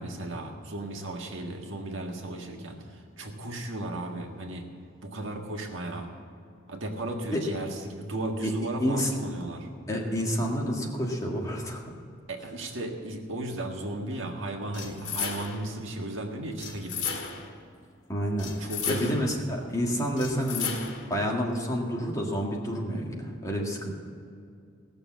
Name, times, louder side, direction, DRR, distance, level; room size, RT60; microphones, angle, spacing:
voice 1, 0.0-4.6 5.0-6.1 6.7-9.7 12.3-17.1 18.6-19.3, right 1 dB, 65° right, 1 dB, 1.7 m, -35 dB
voice 2, 8.8-9.1 9.9-11.8 18.1-20.8 21.1-23.9, equal, 15° left, -2 dB, 1.8 m, -29 dB
sound 1, 14.7-15.7 16.6-17.6 18.4-19.4 20.2-21.1, left 6 dB, 65° left, 1.9 m, -34 dB
18.0 x 6.9 x 7.5 m, 2.4 s
head